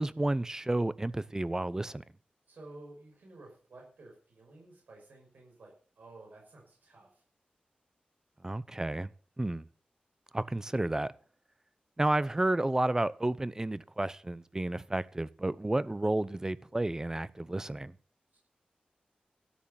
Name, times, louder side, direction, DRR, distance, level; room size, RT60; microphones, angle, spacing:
voice 1, 0.0-2.0 8.4-9.1 9.4-9.6 10.3-11.1 12.0-17.9, right 2 dB, 20° right, 0.7 m, -31 dB
voice 2, 2.5-7.2 18.3-18.4, right 2 dB, 85° right, 5.8 m, -53 dB
13.0 x 9.9 x 7.1 m
wide cardioid pair, 95°, 3 cm